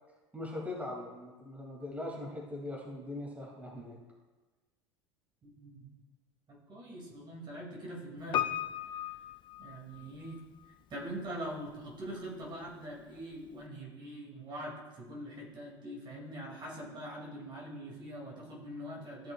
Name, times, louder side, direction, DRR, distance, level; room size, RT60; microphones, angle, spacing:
voice 1, 0.3-4.0, left 2 dB, 10° right, -3 dB, 2.7 m, -41 dB
voice 2, 5.4-5.9 6.5-8.5 9.6-10.4 10.9-19.3, right 1 dB, 30° right, -3 dB, 2.6 m, -43 dB
Piano, 8.3-10.4 10.6-10.7, left 11 dB, 35° left, 0.4 m, -35 dB
14.0 x 6.0 x 2.4 m, 1.2 s
figure-of-eight pair, 70°, 15 cm